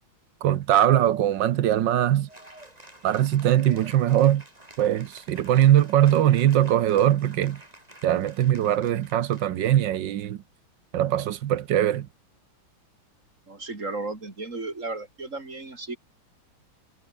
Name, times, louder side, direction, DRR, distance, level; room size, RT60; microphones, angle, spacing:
voice 1, 0.4-2.3 3.0-4.4 4.8-7.6 8.0-10.4 10.9-12.1, right 11 dB, 70° right, 1.5 m, -21 dB
Cheering / Applause, 2.3-9.8, right 1 dB, 15° right, 5.3 m, -50 dB
voice 2, 13.5-16.0, right 3 dB, 35° right, 4.0 m, -34 dB
omnidirectional pair, 2.2 m